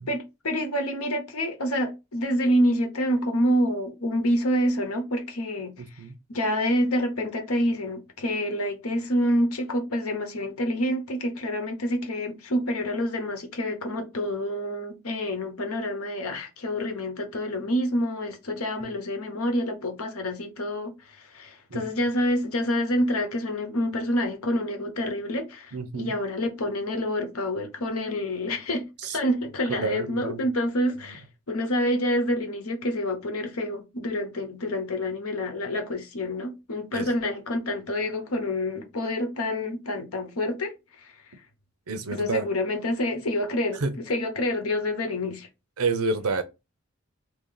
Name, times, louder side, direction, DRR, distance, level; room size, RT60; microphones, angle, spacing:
voice 1, 0.1-5.7 6.3-28.9 29.1-40.7 41.0-41.1 42.1-45.5, equal, 85° left, 1.0 m, -27 dB
voice 2, 25.7-26.1 29.0-29.2 29.7-30.4 36.9-37.1 41.9-42.5 43.8-44.0 45.8-46.4, right 3 dB, 90° right, 0.8 m, -29 dB
2.9 x 2.9 x 3.9 m
head